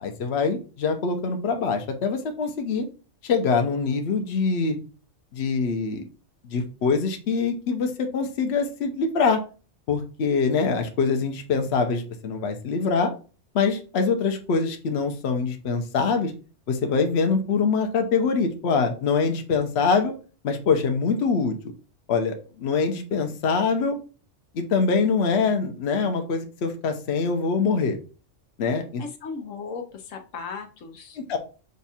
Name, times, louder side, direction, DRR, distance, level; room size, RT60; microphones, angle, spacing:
voice 1, 0.0-2.9 3.2-4.8 5.3-6.0 6.5-9.4 9.9-13.1 13.5-16.3 16.7-20.1 20.4-21.5 22.1-24.0 24.5-28.0 28.6-29.0 31.2-31.4, left 5 dB, 60° left, 5 dB, 1.0 m, -24 dB
voice 2, 29.0-31.2, left 5 dB, 85° left, 4 dB, 1.2 m, -36 dB
5.2 x 2.4 x 4.1 m, 0.35 s
omnidirectional pair, 1.3 m